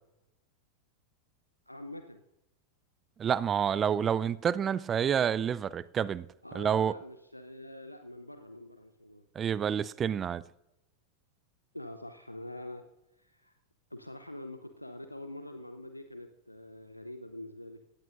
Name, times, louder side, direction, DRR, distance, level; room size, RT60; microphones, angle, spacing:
voice 1, 1.7-2.2 6.4-9.2 11.7-12.8 13.2-13.6 13.9-17.8, left 1 dB, 85° left, 0.7 m, -45 dB
voice 2, 3.2-6.3 6.5-6.9 9.4-10.4, right 8 dB, 25° right, 0.4 m, -28 dB
18.0 x 14.5 x 2.6 m
figure-of-eight pair, 90°, 0 cm